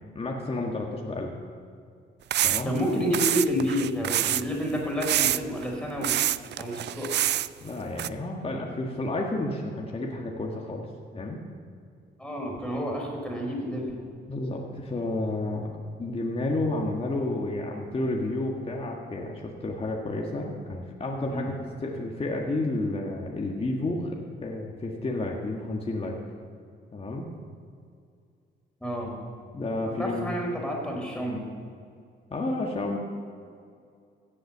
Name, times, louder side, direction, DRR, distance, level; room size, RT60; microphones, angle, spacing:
voice 1, 0.2-1.3 2.4-2.8 7.6-10.9 11.1-11.4 14.3-15.7 16.0-26.2 26.9-27.3 29.5-30.3 32.3-33.0, left 2 dB, 30° left, 0 dB, 1.8 m, -31 dB
sound 1, 2.3-2.8 3.1-4.4 5.0-5.6 6.0-7.5 8.0-8.1, right 12 dB, 60° right, 0.4 m, -26 dB
voice 2, 2.6-6.2 6.6-7.1 12.2-14.0 21.3-21.5 28.8-29.2 30.0-31.4, equal, 5° left, -1 dB, 4.4 m, -29 dB
16.0 x 7.8 x 7.3 m, 2.3 s
cardioid pair, 90°, 20 cm